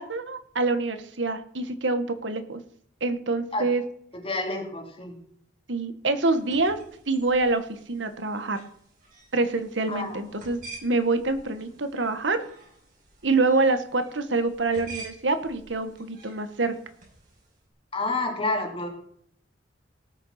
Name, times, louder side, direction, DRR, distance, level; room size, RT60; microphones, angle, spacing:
voice 1, 0.0-2.6 3.0-3.8 5.7-6.8 7.1-8.6 9.3-12.4 13.2-16.7, right 3 dB, 70° right, 9 dB, 1.4 m, -26 dB
voice 2, 4.1-5.2 9.9-10.2 17.9-18.9, left 2 dB, 30° left, 2 dB, 2.8 m, -29 dB
sound 1, 6.2-17.6, right 3 dB, 45° right, 6.1 m, -49 dB
18.0 x 6.8 x 5.8 m, 0.66 s
head